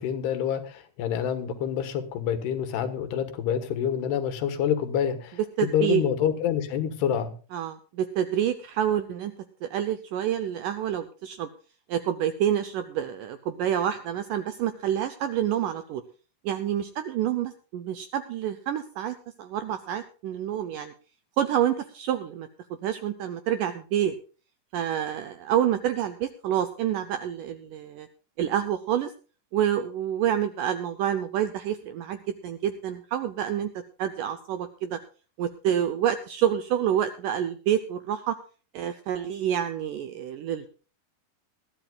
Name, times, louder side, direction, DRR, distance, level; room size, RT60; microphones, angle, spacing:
voice 1, 0.0-7.3, left 9 dB, 85° left, 9 dB, 3.4 m, -27 dB
voice 2, 5.6-6.0 7.5-9.3 9.6-11.5 11.9-16.0 16.4-20.9 21.4-22.5 22.8-24.2 24.7-28.1 28.4-29.1 29.5-33.7 34.0-35.0 35.4-38.4 38.7-40.7, right 10 dB, 80° right, 10 dB, 1.9 m, -28 dB
20.5 x 13.5 x 2.3 m, 0.37 s
omnidirectional pair, 4.6 m